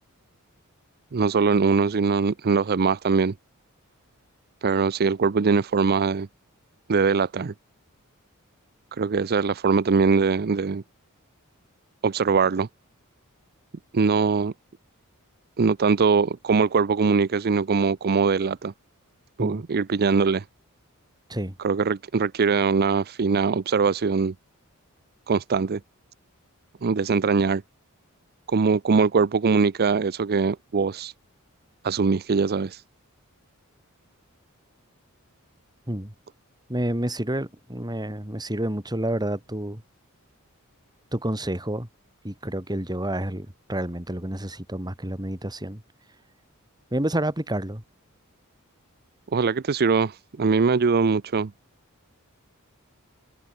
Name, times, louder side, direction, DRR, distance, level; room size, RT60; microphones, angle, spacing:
voice 1, 1.1-3.3 4.6-6.3 6.9-7.5 8.9-10.8 12.0-12.7 13.9-14.5 15.6-18.7 19.4-20.4 21.6-24.3 25.3-25.8 26.8-27.6 28.5-31.1 31.8-32.8 49.3-51.5, right 5 dB, 45° right, 0.5 m, -22 dB
voice 2, 36.7-39.8 41.1-41.9 42.2-45.8 46.9-47.8, right 1 dB, 20° right, 3.3 m, -29 dB
open air
head